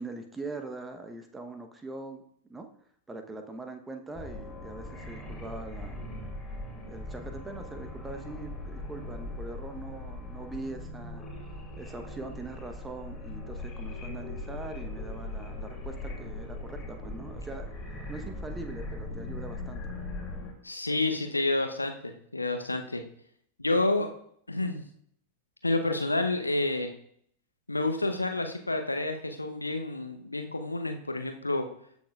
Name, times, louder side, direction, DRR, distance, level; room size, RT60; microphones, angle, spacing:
voice 1, 0.0-2.7 3.1-6.0 6.9-11.2 11.8-17.7 18.1-19.8, right 2 dB, 10° right, 6 dB, 0.9 m, -42 dB
sound 1, 4.1-20.5, left 2 dB, 15° left, 2.7 m, -40 dB
voice 2, 20.6-23.0 23.6-24.1 24.5-24.8 25.6-26.9 27.7-31.7, left 2 dB, 85° left, 6 dB, 0.7 m, -29 dB
14.0 x 6.2 x 2.4 m, 0.67 s
figure-of-eight pair, 90°, 0 cm